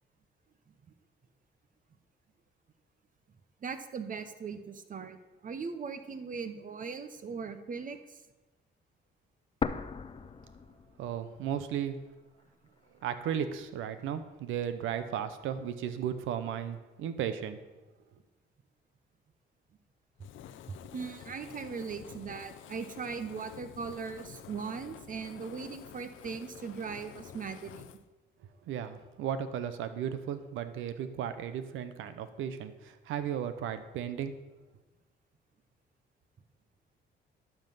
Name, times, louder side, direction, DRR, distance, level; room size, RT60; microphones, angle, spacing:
voice 1, 3.6-8.2 20.9-27.9, right 5 dB, 45° right, 10 dB, 0.9 m, -39 dB
sound 1, 9.6-11.6 11.8-11.9 12.7-13.6, left 5 dB, 25° left, 0.5 m, -37 dB
voice 2, 11.0-12.0 13.0-17.6 28.6-34.3, right 9 dB, 85° right, 11 dB, 0.8 m, -35 dB
Fire, 20.2-28.0, left 10 dB, 75° left, 0.6 m, -49 dB
11.5 x 5.7 x 5.5 m, 1.1 s
cardioid pair, 90°, 20 cm